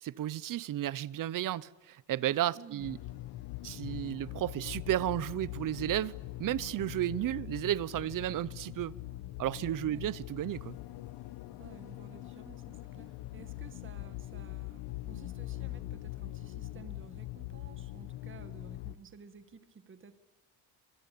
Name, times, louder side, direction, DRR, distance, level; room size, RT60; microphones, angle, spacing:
voice 1, 0.0-3.0 3.6-9.0 9.4-10.8, right 13 dB, 55° right, 0.9 m, -33 dB
voice 2, 2.5-2.9 9.8-10.1 11.6-20.1, right 6 dB, 30° right, 1.9 m, -54 dB
sound 1, 2.8-19.0, left 16 dB, 85° left, 1.3 m, -42 dB
26.0 x 25.0 x 8.6 m
cardioid pair, 140°, 40 cm